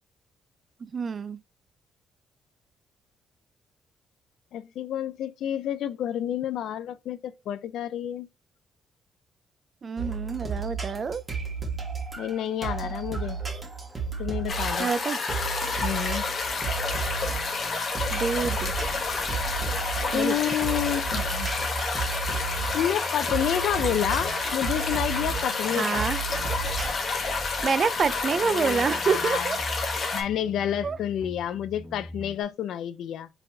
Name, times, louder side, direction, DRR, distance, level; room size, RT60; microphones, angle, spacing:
voice 1, 0.8-1.4 9.8-11.2 14.8-15.2 18.1-18.7 20.1-20.6 25.8-26.2 27.6-29.6 30.8-31.0, right 5 dB, 45° right, 0.4 m, -27 dB
voice 2, 4.5-8.3 12.2-13.4 14.2-14.9 15.8-16.3 20.1-21.5 22.7-26.1 28.5-29.5 30.1-33.3, left 10 dB, 75° left, 0.4 m, -29 dB
sound 1, 10.0-26.9, right 5 dB, 25° right, 1.6 m, -33 dB
sound 2, 14.5-30.2, left 4 dB, 50° left, 1.0 m, -30 dB
sound 3, 16.5-32.4, equal, 5° left, 0.8 m, -42 dB
4.1 x 3.3 x 2.7 m
cardioid pair, 90°, 0 cm